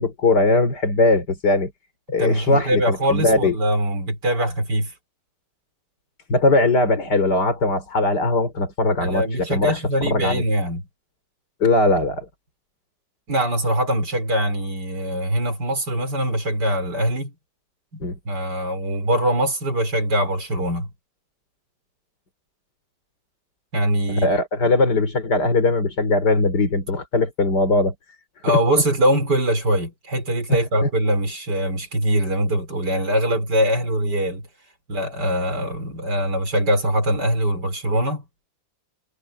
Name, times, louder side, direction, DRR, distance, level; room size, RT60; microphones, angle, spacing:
voice 1, 0.0-1.7 2.1-3.6 6.3-9.8 10.0-10.4 11.6-12.3 18.0-18.2 24.1-27.9 28.5-28.6 30.5-30.9, left 2 dB, 60° left, 4.6 m, -20 dB
voice 2, 2.2-4.9 9.0-10.9 13.3-17.3 17.9-20.9 23.7-24.4 28.4-34.4 34.9-38.2, right 1 dB, 60° right, 5.7 m, -22 dB
omnidirectional pair, 2.0 m